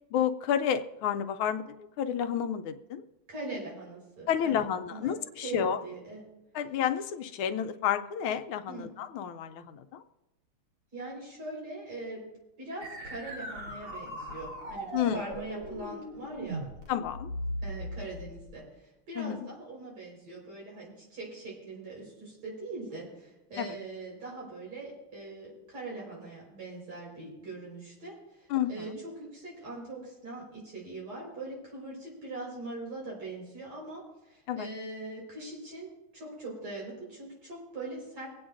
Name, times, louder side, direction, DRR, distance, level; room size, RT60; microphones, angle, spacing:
voice 1, 0.1-3.0 4.3-5.8 6.5-10.0 14.9-15.2 16.9-17.3 19.2-19.5 23.6-23.7 28.5-29.0 34.5-34.7, left 9 dB, 80° left, 9 dB, 1.4 m, -30 dB
voice 2, 3.3-5.2 5.4-6.2 8.7-8.9 10.9-12.3 12.6-16.6 17.6-38.3, right 2 dB, 85° right, -3 dB, 5.3 m, -42 dB
sound 1, 12.8-18.5, equal, 30° right, 1.2 m, -39 dB
24.5 x 8.7 x 2.5 m, 0.97 s
omnidirectional pair, 2.4 m